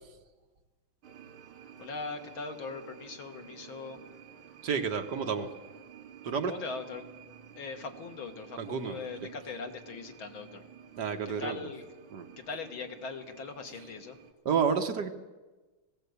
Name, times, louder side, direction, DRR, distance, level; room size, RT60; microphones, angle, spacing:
sound 1, 1.0-14.3, right 8 dB, 90° right, 2.8 m, -52 dB
voice 1, 1.8-4.0 5.3-5.5 6.5-7.1 7.5-10.6 11.4-11.8 12.4-14.2, left 4 dB, 75° left, 5 dB, 2.5 m, -40 dB
voice 2, 4.6-5.5 6.2-6.6 8.6-9.0 11.0-11.7 12.1-12.3 14.4-15.1, right 6 dB, 60° right, 6 dB, 1.6 m, -30 dB
20.0 x 16.5 x 8.1 m, 1.2 s
omnidirectional pair, 2.2 m